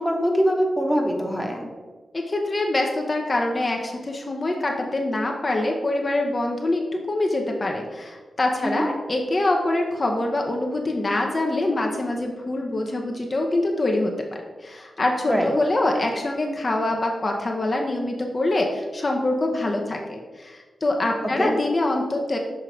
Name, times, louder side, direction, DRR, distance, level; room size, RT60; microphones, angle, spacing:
voice 1, 0.0-1.6 8.6-8.9 15.3-15.5 21.4-21.5, equal, 5° right, 1 dB, 1.3 m, -23 dB
voice 2, 2.1-14.1 14.6-22.4, left 2 dB, 40° left, 1 dB, 0.8 m, -24 dB
6.4 x 3.6 x 4.6 m, 1.4 s
cardioid pair, 55°, 0 cm